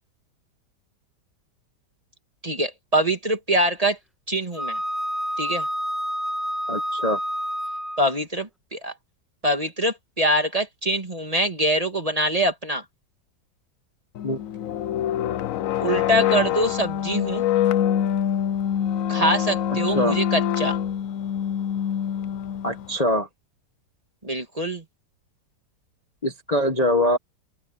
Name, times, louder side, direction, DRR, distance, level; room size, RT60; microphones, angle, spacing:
voice 1, 2.4-4.0 4.3-4.8 5.4-5.7 8.0-8.9 9.4-12.8 15.8-17.5 19.1-20.8 24.2-24.8, right 1 dB, 20° right, 2.2 m, -24 dB
Wind instrument woodwind instrument, 4.6-8.1, equal, ahead, 1.1 m, -28 dB
voice 2, 6.7-7.2 14.2-14.4 19.9-20.2 22.6-23.3 26.2-27.2, left 1 dB, 25° left, 1.5 m, -23 dB
sound 1, 14.2-22.9, left 10 dB, 65° left, 0.9 m, -25 dB
open air
omnidirectional pair, 1.9 m